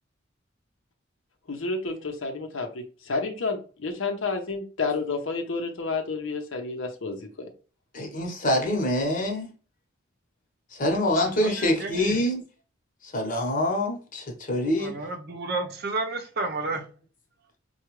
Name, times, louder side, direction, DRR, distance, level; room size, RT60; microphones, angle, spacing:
voice 1, 1.5-7.5, left 3 dB, 70° left, 0.8 m, -30 dB
voice 2, 7.9-9.5 10.7-12.4 13.0-14.9, left 1 dB, 40° left, 1.1 m, -25 dB
voice 3, 11.4-12.2 14.8-16.8, right 3 dB, 50° right, 0.7 m, -31 dB
4.7 x 2.3 x 3.1 m
head